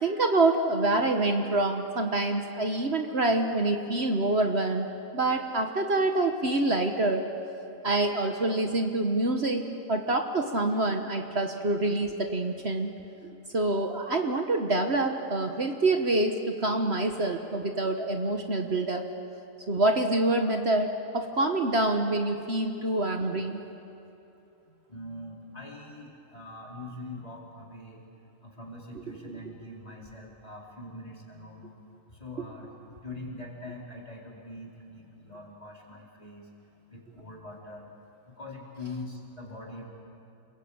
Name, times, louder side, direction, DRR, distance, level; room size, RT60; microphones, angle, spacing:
voice 1, 0.0-4.9 5.1-7.3 7.8-12.9 13.2-19.1 19.7-23.6 29.2-29.4, right 2 dB, 50° right, 4 dB, 1.6 m, -26 dB
voice 2, 24.7-28.0 28.4-31.7 32.1-36.5 36.9-37.9 38.3-39.8, left 2 dB, 25° left, -3 dB, 4.6 m, -43 dB
30.0 x 22.0 x 8.8 m, 2.8 s
omnidirectional pair, 1.4 m